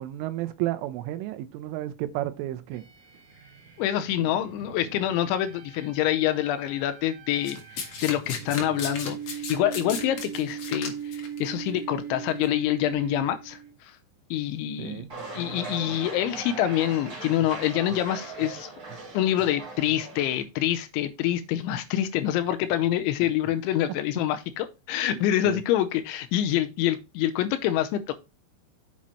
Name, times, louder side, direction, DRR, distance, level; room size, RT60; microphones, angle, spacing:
voice 1, 0.0-2.8 14.8-15.1 25.4-25.6, right 14 dB, 85° right, 3.4 m, -32 dB
sound 1, 2.7-13.8, right 9 dB, 50° right, 2.4 m, -40 dB
voice 2, 3.8-13.9 14.3-15.1 15.4-18.7 19.1-28.1, left 12 dB, 80° left, 3.0 m, -26 dB
Domestic sounds home sounds, 7.4-11.4 12.3-12.5, left 5 dB, 55° left, 1.8 m, -35 dB
sound 2, 15.1-20.4, right 3 dB, 20° right, 3.0 m, -39 dB
7.6 x 6.0 x 4.2 m
omnidirectional pair, 5.6 m